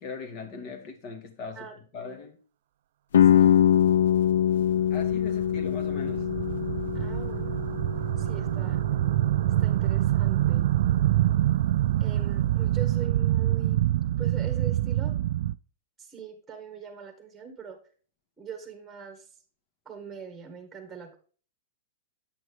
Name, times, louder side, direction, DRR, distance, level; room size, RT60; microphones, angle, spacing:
voice 1, 0.0-1.7 1.9-2.4 4.9-6.3, left 4 dB, 40° left, 2.2 m, -39 dB
sound 1, 3.1-8.9, left 10 dB, 75° left, 0.3 m, -23 dB
voice 2, 3.2-3.6 6.9-7.6 8.2-8.8 9.6-10.7 12.0-13.9 14.2-15.2 16.0-17.8 18.4-19.3 19.9-21.2, right 6 dB, 10° right, 2.0 m, -42 dB
sound 2, 4.7-15.5, right 13 dB, 65° right, 0.3 m, -26 dB
8.8 x 6.3 x 3.4 m
hypercardioid pair, 130°, 0 cm